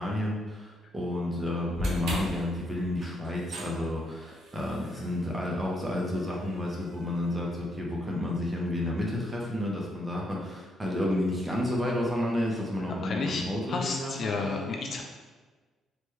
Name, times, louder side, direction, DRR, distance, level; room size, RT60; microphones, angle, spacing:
voice 1, 0.0-14.7, left 1 dB, 15° right, -2 dB, 0.6 m, -31 dB
sound 1, 1.7-8.0, equal, 70° right, 0.8 m, -39 dB
voice 2, 13.0-13.4 13.7-15.0, left 4 dB, 45° left, 2 dB, 0.3 m, -31 dB
3.4 x 2.1 x 3.1 m, 1.3 s
cardioid pair, 130°, 0 cm